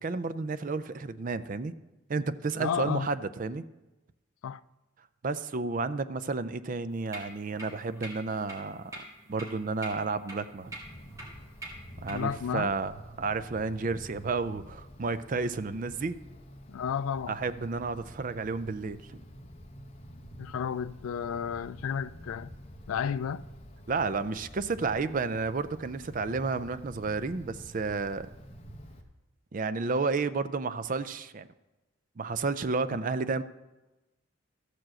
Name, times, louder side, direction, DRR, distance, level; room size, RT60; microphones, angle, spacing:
voice 1, 0.0-1.7 2.1-3.6 5.2-9.0 9.3-10.8 12.0-16.2 17.3-19.0 23.9-28.3 29.5-31.5 32.2-33.4, right 4 dB, 40° right, 0.4 m, -31 dB
voice 2, 2.6-3.1 4.4-4.6 12.1-12.7 16.7-17.3 20.4-22.5 22.9-23.4, left 7 dB, 75° left, 0.3 m, -32 dB
sound 1, 6.9-12.3, right 1 dB, 15° right, 2.5 m, -46 dB
Wind, 10.6-29.0, equal, 30° left, 1.0 m, -49 dB
13.5 x 4.7 x 7.6 m
head